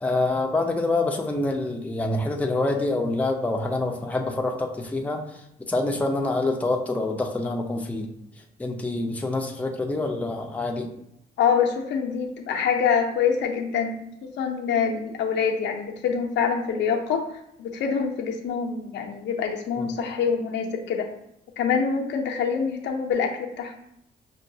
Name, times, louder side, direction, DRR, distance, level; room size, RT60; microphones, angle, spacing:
voice 1, 0.0-5.2 5.7-8.1 8.6-10.9 19.8-19.9, left 2 dB, 10° left, 2 dB, 0.4 m, -26 dB
voice 2, 11.4-17.2 17.6-21.1 21.6-23.7, left 6 dB, 80° left, 2 dB, 0.6 m, -25 dB
5.5 x 2.3 x 2.6 m, 0.76 s
cardioid pair, 110°, 18 cm